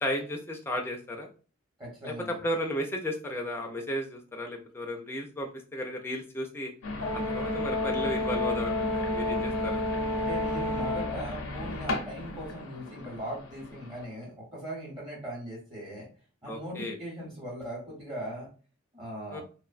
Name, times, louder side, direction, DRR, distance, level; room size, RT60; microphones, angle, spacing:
voice 1, 0.0-1.3 2.0-6.7 7.3-9.8 16.5-17.0 19.3-19.4, equal, 10° left, 2 dB, 0.3 m, -34 dB
voice 2, 1.8-2.3 10.1-16.1 16.4-18.5 18.9-19.4, equal, 25° right, -5 dB, 0.9 m, -39 dB
sound 1, 6.8-14.1, left 2 dB, 75° left, 0.5 m, -37 dB
Brass instrument, 7.0-11.2, left 2 dB, 75° right, 0.8 m, -30 dB
2.5 x 2.1 x 2.4 m, 0.37 s
head